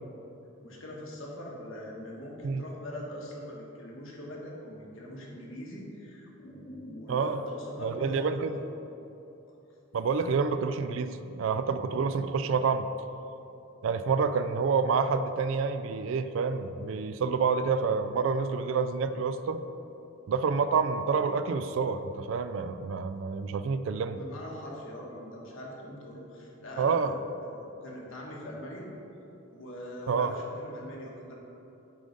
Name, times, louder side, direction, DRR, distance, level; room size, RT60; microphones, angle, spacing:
voice 1, 0.6-8.6 24.1-27.0 27.5-28.9 29.5-31.3, left 1 dB, 65° left, -2 dB, 1.3 m, -42 dB
voice 2, 7.1-7.4 7.8-8.6 9.9-12.8 13.8-19.6 20.3-24.2 26.8-27.1 30.1-30.3, right 5 dB, 65° right, 10 dB, 0.3 m, -28 dB
8.4 x 3.8 x 5.2 m, 3.0 s
head